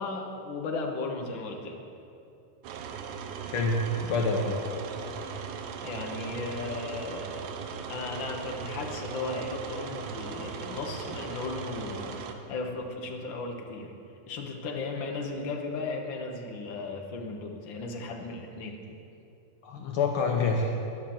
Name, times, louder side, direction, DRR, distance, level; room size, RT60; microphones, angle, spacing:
voice 1, 0.0-1.8 5.8-7.4 7.9-13.9 14.3-18.8, left 3 dB, 60° left, 2 dB, 1.2 m, -36 dB
sound 1, 2.6-12.4, right 6 dB, 75° right, 2.1 m, -38 dB
voice 2, 3.4-4.6 19.6-20.8, left 3 dB, 80° left, 1 dB, 1.2 m, -27 dB
12.0 x 10.5 x 7.1 m, 2.7 s
omnidirectional pair, 3.8 m